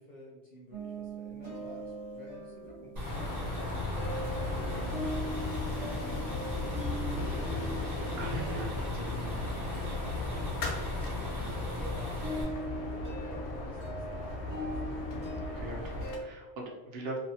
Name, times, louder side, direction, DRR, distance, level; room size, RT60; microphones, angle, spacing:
voice 1, 0.0-3.2 3.4-8.2 10.0-15.2, left 1 dB, 55° left, -5 dB, 0.5 m, -51 dB
sound 1, 0.7-16.2, right 1 dB, 85° right, 1.1 m, -42 dB
sound 2, 3.0-16.2, left 2 dB, 75° left, 0.8 m, -37 dB
sound 3, 3.0-12.4, left 1 dB, 40° right, 0.9 m, -38 dB
voice 2, 8.1-9.1 15.4-17.2, right 2 dB, 65° right, -1 dB, 0.8 m, -40 dB
2.6 x 2.0 x 2.7 m, 1.1 s
omnidirectional pair, 1.1 m